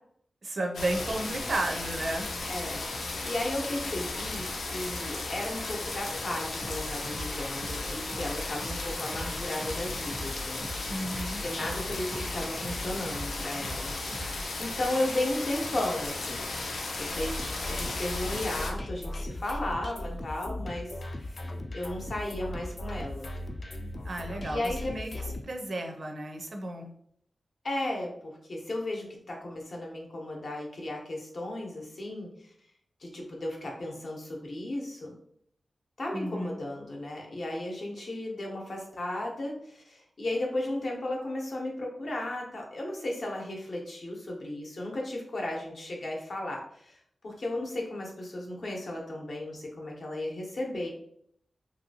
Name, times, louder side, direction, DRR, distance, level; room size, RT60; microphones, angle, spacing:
voice 1, 0.4-2.3 10.9-11.4 24.0-25.1 25.4-26.9 36.1-36.6, right 1 dB, 50° right, 3 dB, 0.4 m, -33 dB
sound 1, 0.7-18.7, left 2 dB, 90° left, 0.5 m, -35 dB
voice 2, 2.5-2.9 3.2-10.7 11.4-14.2 14.6-16.5 17.0-21.4 21.7-23.3 24.5-24.9 27.6-32.5 33.0-35.1 36.0-47.0 47.2-50.9, left 1 dB, 55° left, -1 dB, 0.7 m, -35 dB
sound 2, 6.6-14.5, equal, 90° right, 0.7 m, -40 dB
sound 3, 17.1-25.4, left 1 dB, 35° left, 0.3 m, -37 dB
3.0 x 2.6 x 2.7 m, 0.68 s
wide cardioid pair, 150°, 0 cm